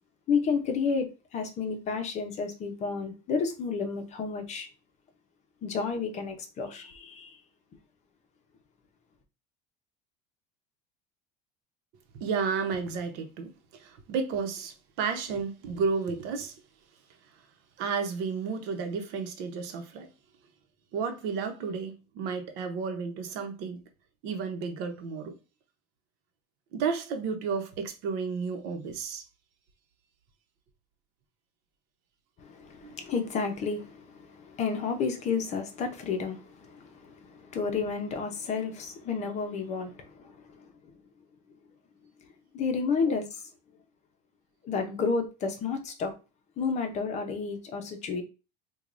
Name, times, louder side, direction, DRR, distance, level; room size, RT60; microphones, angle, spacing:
voice 1, 0.3-4.7 5.6-7.4 32.4-40.7 42.5-43.2 44.6-46.1 46.6-48.2, left 5 dB, 40° left, 0.7 m, -31 dB
voice 2, 12.2-13.5 13.8-16.5 17.8-20.1 20.9-23.8 24.2-25.4 26.7-29.2 32.8-32.9 43.1-43.2, right 5 dB, 65° right, 0.8 m, -32 dB
4.5 x 2.3 x 2.6 m
cardioid pair, 140°, 19 cm